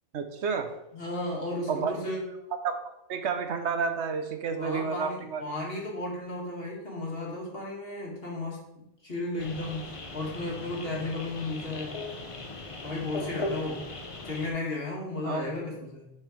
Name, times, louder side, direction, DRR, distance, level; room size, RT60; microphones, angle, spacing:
voice 1, 0.1-0.7 1.7-1.9 2.6-5.4 15.2-15.5, right 5 dB, 70° right, 7 dB, 1.0 m, -30 dB
voice 2, 0.9-2.2 4.6-8.6 9.0-12.0 12.8-13.8 14.2-16.1, left 2 dB, 50° left, -2 dB, 2.0 m, -34 dB
sound 1, 9.4-14.5, left 2 dB, 30° left, 0.7 m, -38 dB
6.4 x 4.5 x 5.0 m, 0.82 s
omnidirectional pair, 1.2 m